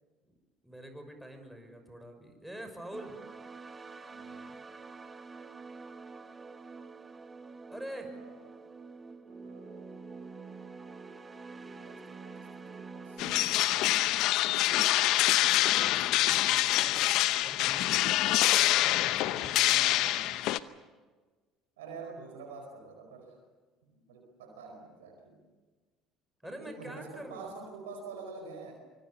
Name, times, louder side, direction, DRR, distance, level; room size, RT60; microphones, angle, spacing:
voice 1, 0.6-3.2 7.7-8.1 15.5-17.0 17.4-18.4 19.0-20.2 26.4-27.5, right 1 dB, ahead, 5 dB, 5.9 m, -46 dB
sound 1, 2.9-13.7, right 4 dB, 25° right, 2.0 m, -47 dB
voice 2, 4.1-4.6 8.1-8.5 9.1-9.9 11.6-13.6 14.4-14.7 19.7-20.6 21.8-23.4 23.8-25.4 26.4-28.7, right 4 dB, 80° right, 2 dB, 4.7 m, -47 dB
sound 2, 13.2-20.6, left 15 dB, 65° left, 0.8 m, -26 dB
24.5 x 24.5 x 7.2 m, 1.3 s
hypercardioid pair, 65°, 0 cm